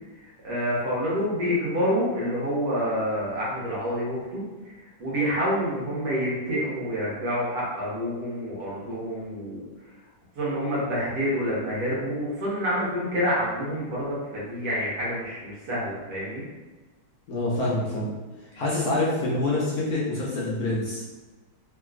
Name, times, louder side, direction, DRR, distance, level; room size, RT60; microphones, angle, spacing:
voice 1, 0.2-9.6 10.3-16.4 18.5-18.6, equal, 60° right, -7 dB, 1.4 m, -28 dB
voice 2, 17.3-18.1 18.6-21.0, left 2 dB, 65° left, -6 dB, 1.0 m, -26 dB
3.2 x 2.9 x 2.4 m, 1.2 s
omnidirectional pair, 2.0 m